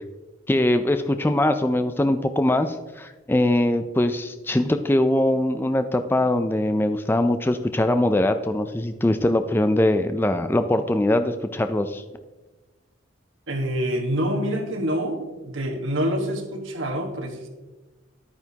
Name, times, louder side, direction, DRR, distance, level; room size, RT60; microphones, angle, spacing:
voice 1, 0.5-12.0, left 1 dB, 10° left, 9 dB, 0.3 m, -22 dB
voice 2, 13.5-17.5, equal, 80° right, 3 dB, 1.4 m, -26 dB
11.0 x 9.0 x 2.8 m, 1.2 s
head